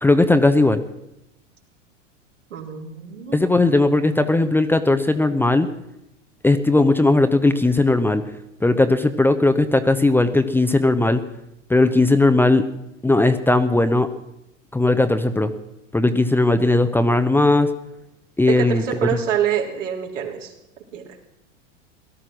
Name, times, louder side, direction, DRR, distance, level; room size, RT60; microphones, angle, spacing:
voice 1, 0.0-0.8 3.3-5.7 6.4-8.2 8.6-11.2 11.7-12.6 13.0-14.1 14.7-15.5 15.9-17.7 18.4-18.8, left 2 dB, 5° left, 8 dB, 0.8 m, -17 dB
voice 2, 2.5-3.5 18.4-20.5 20.9-21.1, right 9 dB, 75° right, 0 dB, 3.5 m, -26 dB
17.5 x 12.5 x 6.2 m, 0.84 s
hypercardioid pair, 95°, 37 cm